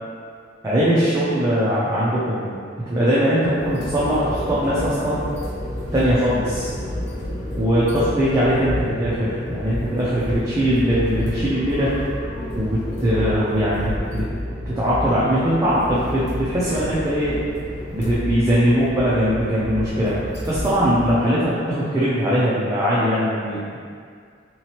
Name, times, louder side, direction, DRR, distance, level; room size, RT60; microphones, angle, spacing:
voice 1, 0.6-2.5 2.9-5.2 5.9-6.7 7.6-12.0 12.6-14.2 14.7-17.4 17.9-20.1 20.5-23.8, equal, 15° right, -10 dB, 0.5 m, -21 dB
sound 1, 3.5-21.1, left 1 dB, 60° left, 0.9 m, -30 dB
3.9 x 3.0 x 2.9 m, 2.1 s
head